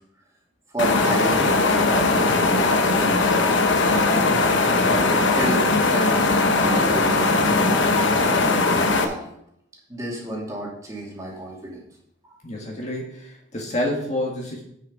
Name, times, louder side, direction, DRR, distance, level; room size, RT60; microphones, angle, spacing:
voice 1, 0.7-3.1 3.8-4.5 4.9-5.7 5.9-9.4 9.9-11.8 12.2-12.3, right 1 dB, 15° right, -4 dB, 2.7 m, -31 dB
sound 1, 0.8-9.0, left 3 dB, 80° left, 1.0 m, -19 dB
voice 2, 12.4-14.6, left 1 dB, 35° left, -1 dB, 1.8 m, -28 dB
8.9 x 6.6 x 5.1 m, 0.74 s
head